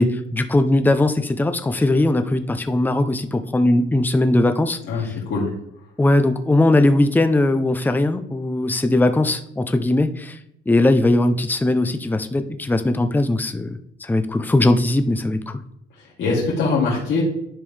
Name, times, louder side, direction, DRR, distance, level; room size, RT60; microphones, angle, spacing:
voice 1, 0.0-5.1 6.0-10.4 10.7-15.6, left 2 dB, 10° left, 9 dB, 0.6 m, -19 dB
voice 2, 4.9-5.5 16.0-17.2, left 4 dB, 70° left, -7 dB, 2.3 m, -22 dB
10.5 x 5.2 x 3.3 m, 0.76 s
cardioid pair, 90°, 20 cm